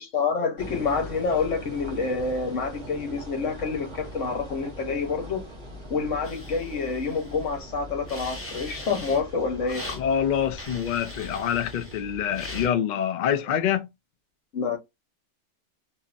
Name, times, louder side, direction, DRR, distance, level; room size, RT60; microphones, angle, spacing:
voice 1, 0.0-5.4 5.9-9.8 14.5-14.8, left 4 dB, 80° left, 1.4 m, -28 dB
sound 1, 0.6-12.7, equal, 25° right, 1.1 m, -41 dB
sound 2, 6.2-7.6 8.1-9.2 9.7-10.0 10.6-12.0 12.3-12.7, left 1 dB, 15° left, 0.7 m, -41 dB
voice 2, 9.9-13.9, left 9 dB, 60° left, 0.4 m, -26 dB
2.8 x 2.7 x 2.4 m
omnidirectional pair, 1.2 m